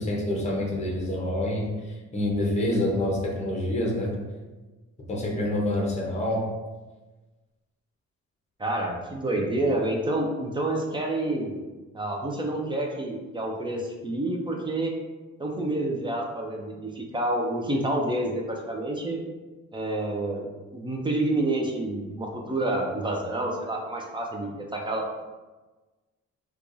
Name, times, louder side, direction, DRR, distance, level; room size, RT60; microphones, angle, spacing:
voice 1, 0.0-4.1 5.1-6.4, left 1 dB, 25° left, -2 dB, 0.8 m, -27 dB
voice 2, 8.6-11.5 11.9-14.9 15.4-19.2 19.7-25.1, right 1 dB, 15° right, 0 dB, 0.4 m, -28 dB
4.5 x 2.3 x 2.6 m, 1.2 s
cardioid pair, 140°, 29 cm